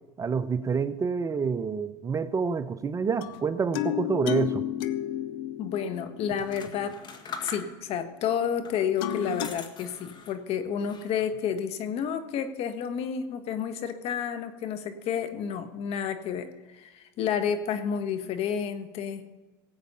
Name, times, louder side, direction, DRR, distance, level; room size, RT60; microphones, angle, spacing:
voice 1, 0.2-4.7, right 5 dB, 25° right, 13 dB, 0.7 m, -28 dB
sound 1, 3.2-7.2 9.0-9.5, left 12 dB, 85° left, 0.8 m, -32 dB
voice 2, 5.6-6.9 7.4-19.2, left 7 dB, 55° left, 10 dB, 1.5 m, -30 dB
sound 2, 6.3-8.0 8.6-10.4 10.8-11.4, left 5 dB, 40° left, 1.9 m, -43 dB
17.5 x 8.3 x 5.6 m, 1.1 s
supercardioid pair, 105°, 12 cm